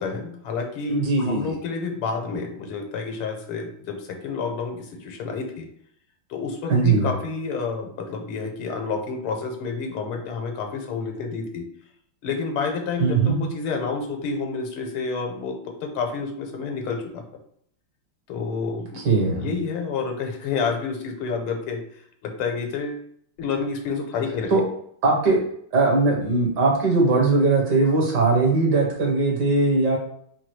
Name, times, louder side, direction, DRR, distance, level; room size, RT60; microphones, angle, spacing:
voice 1, 0.0-5.7 6.3-11.7 12.2-17.2 18.3-19.0 19.3-21.8 22.2-23.0 23.4-24.6, left 5 dB, 80° left, 3 dB, 1.6 m, -29 dB
voice 2, 0.9-1.5 6.7-7.1 13.0-13.4 19.0-19.5 24.5-24.6 25.0-25.4 25.7-30.0, right 3 dB, 60° right, -1 dB, 1.5 m, -20 dB
4.6 x 2.3 x 4.5 m, 0.66 s
omnidirectional pair, 2.3 m